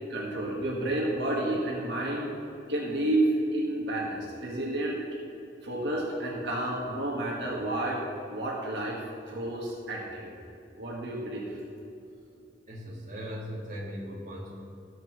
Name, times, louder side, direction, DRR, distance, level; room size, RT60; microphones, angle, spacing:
voice 1, 0.1-5.0 5.6-8.0 8.3-10.4 10.8-11.4, right 1 dB, 75° right, -3 dB, 1.6 m, -30 dB
voice 2, 12.7-14.5, equal, 45° right, -4 dB, 2.0 m, -38 dB
18.0 x 6.6 x 3.2 m, 2.7 s
head